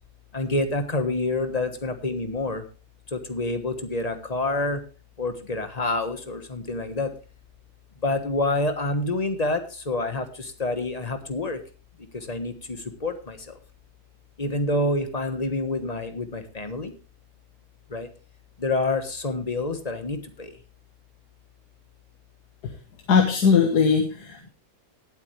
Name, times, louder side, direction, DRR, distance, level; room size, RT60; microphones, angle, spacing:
voice 1, 0.3-2.6 3.1-4.8 5.2-7.1 8.0-11.6 12.3-12.5 13.0-13.4 14.4-16.9 17.9-18.1 18.6-20.5, left 2 dB, 25° left, 8 dB, 1.3 m, -27 dB
voice 2, 23.1-24.5, left 6 dB, 70° left, 3 dB, 1.9 m, -20 dB
18.5 x 8.4 x 3.3 m, 0.34 s
omnidirectional pair, 1.8 m